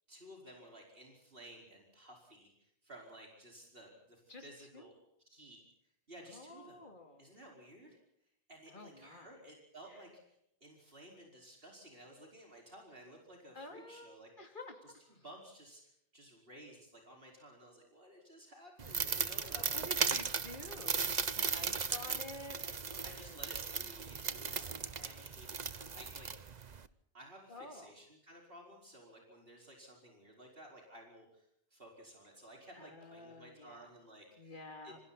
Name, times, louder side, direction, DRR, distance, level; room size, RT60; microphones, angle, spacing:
voice 1, 0.1-5.0 5.3-5.6 6.1-6.8 7.2-8.0 8.5-14.5 14.8-14.9 15.2-20.7 21.5-21.6 23.0-24.7 25.0-26.6 27.1-34.6 34.8-34.9, right 1 dB, 65° right, 0 dB, 5.4 m, -55 dB
voice 2, 6.3-7.3 8.7-9.4 9.9-10.0 13.5-15.2 19.6-23.4 24.5-25.3 27.5-27.9 32.7-33.9 34.4-35.0, left 2 dB, 50° left, 4 dB, 3.2 m, -51 dB
sound 1, 18.8-26.9, right 5 dB, 45° right, 1.1 m, -37 dB
27.5 x 27.0 x 4.3 m, 0.75 s
omnidirectional pair, 1.1 m